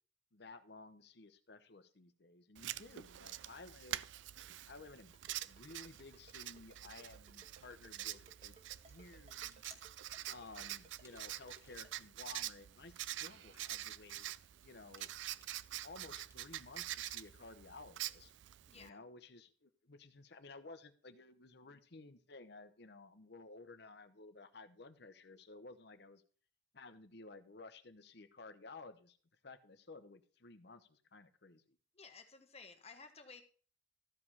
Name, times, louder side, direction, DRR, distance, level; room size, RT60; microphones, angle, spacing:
voice 1, 0.3-4.1 4.7-5.2 5.5-8.5 8.9-9.7 10.3-14.2 14.6-15.1 15.8-18.4 18.7-26.2 26.7-29.2 29.4-31.8, left 3 dB, 60° left, 11 dB, 0.9 m, -55 dB
Writing, 2.6-18.9, right 13 dB, 75° right, 0.4 m, -46 dB
Ringtone, 5.1-11.9, right 2 dB, 35° right, 1.7 m, -62 dB
sound 1, 8.7-12.2 12.7-17.3, right 1 dB, 15° right, 1.9 m, -66 dB
voice 2, 18.7-19.0 31.9-33.4, left 4 dB, 35° left, 7 dB, 1.2 m, -55 dB
13.5 x 5.1 x 5.6 m, 0.43 s
head